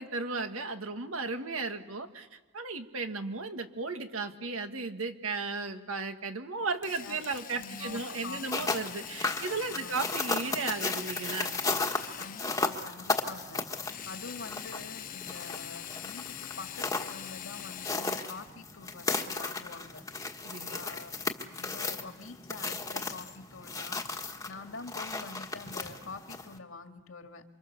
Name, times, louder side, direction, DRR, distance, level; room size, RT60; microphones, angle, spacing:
voice 1, 0.0-11.6 20.4-20.8, right 4 dB, 85° right, 7 dB, 1.8 m, -35 dB
Drill, 6.8-12.9 13.9-18.5, left 10 dB, 40° left, 0.9 m, -44 dB
voice 2, 7.6-8.8 9.7-10.1 12.2-13.7 14.1-20.0 20.7-24.0 24.5-27.4, left 3 dB, 75° left, 6 dB, 2.0 m, -46 dB
sound 1, 8.3-26.6, left 3 dB, 15° left, 1.4 m, -35 dB
28.0 x 25.5 x 6.9 m, 1.2 s
head